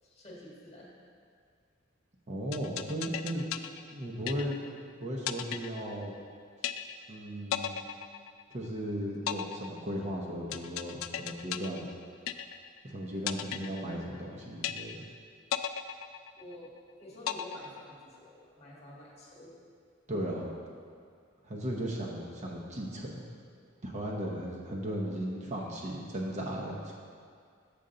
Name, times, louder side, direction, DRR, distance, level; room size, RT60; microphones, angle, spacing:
voice 1, 0.0-0.9 13.1-13.2 16.4-16.7 17.0-19.5, left 1 dB, 35° left, -5 dB, 1.5 m, -49 dB
voice 2, 2.3-3.5 3.9-6.1 7.1-7.8 8.5-11.9 12.8-14.9 20.1-20.5 21.4-23.2 23.8-26.9, equal, 35° right, -2 dB, 0.8 m, -36 dB
sound 1, 2.5-4.8 5.3-6.3 6.6-7.2 7.5-8.8 9.3-12.8 13.3-14.3 14.6-15.2 15.5-16.8 17.3-18.3, left 10 dB, 80° left, 0.3 m, -36 dB
6.9 x 6.6 x 3.8 m, 2.2 s
head